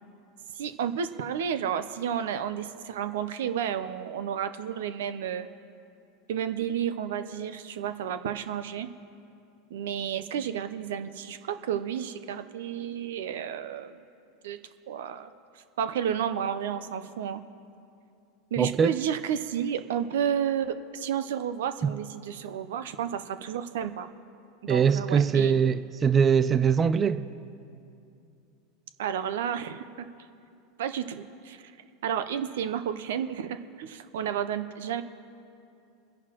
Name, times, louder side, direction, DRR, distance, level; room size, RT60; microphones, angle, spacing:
voice 1, 0.6-5.5 6.3-8.9 9.7-14.0 14.4-14.6 14.9-15.3 15.8-17.4 18.5-24.1 24.6-25.6 29.0-30.1 30.8-31.7 32.0-35.0, right 9 dB, 80° right, 0.7 m, -31 dB
voice 2, 18.6-18.9 21.8-21.9 24.7-27.2, right 7 dB, 25° right, 0.4 m, -22 dB
28.5 x 11.0 x 3.0 m
hypercardioid pair, 105°, 0 cm